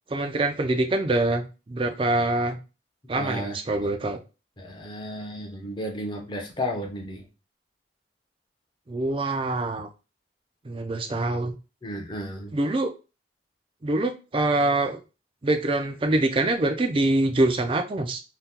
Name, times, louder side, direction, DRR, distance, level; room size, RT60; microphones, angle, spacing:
voice 1, 0.1-2.6 3.1-4.2 8.9-9.9 10.6-11.5 12.5-12.9 13.8-15.0 15.4-18.2, right 2 dB, 30° right, 0.4 m, -24 dB
voice 2, 3.1-3.6 4.6-7.3 11.8-12.6, equal, 25° left, 0.7 m, -33 dB
2.8 x 2.2 x 3.6 m
head